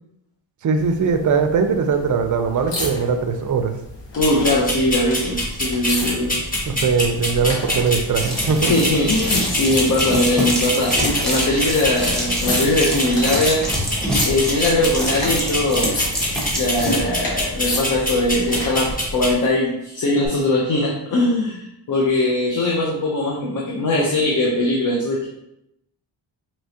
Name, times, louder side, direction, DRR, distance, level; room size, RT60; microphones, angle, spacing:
voice 1, 0.6-3.7 6.7-8.7, right 5 dB, 45° right, 7 dB, 0.5 m, -20 dB
sound 1, 0.8-18.9 20.2-20.3, left 2 dB, 80° left, 1.2 m, -33 dB
voice 2, 4.2-6.3 8.6-10.9 11.2-13.6 14.2-15.9 16.6-25.3, left 1 dB, 45° left, -2 dB, 0.7 m, -20 dB
sound 2, 4.2-19.3, left 1 dB, 20° left, 1.5 m, -26 dB
sound 3, 8.2-17.0, equal, ahead, 1.1 m, -26 dB
4.6 x 2.9 x 2.8 m, 0.81 s
cardioid pair, 105°, 44 cm